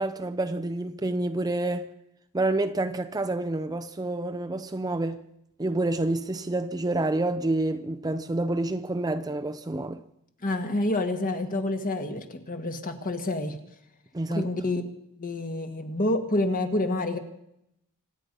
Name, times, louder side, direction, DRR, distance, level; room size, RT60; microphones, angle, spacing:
voice 1, 0.0-1.9 2.3-5.2 5.6-10.0 14.1-14.5, right 2 dB, 15° right, 0.6 m, -28 dB
voice 2, 10.4-13.6 14.3-14.8 15.2-17.2, left 2 dB, 40° left, 1.7 m, -28 dB
26.0 x 9.6 x 5.4 m
head